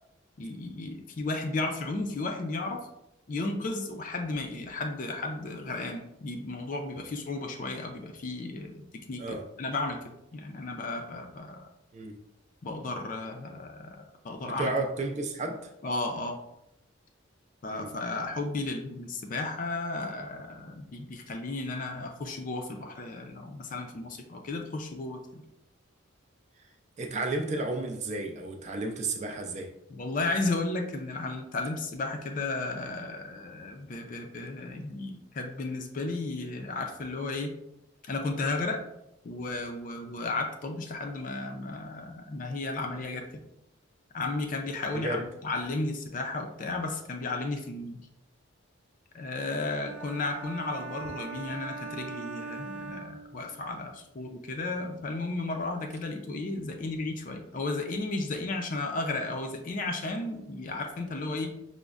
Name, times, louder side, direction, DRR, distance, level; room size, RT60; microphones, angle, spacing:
voice 1, 0.4-2.9 3.3-9.2 9.6-10.0 10.3-11.7 12.6-14.7 15.8-16.4 17.6-25.4 29.9-37.5 38.0-38.8 39.2-43.2 44.1-48.0 49.1-61.5, left 2 dB, 40° left, 4 dB, 0.4 m, -34 dB
voice 2, 14.4-15.7 17.7-17.9 27.0-29.7 45.0-45.2, right 2 dB, 35° right, 4 dB, 0.3 m, -32 dB
sound 1, 49.8-53.7, right 4 dB, 80° right, 0.5 m, -41 dB
5.0 x 2.0 x 2.3 m, 0.84 s
head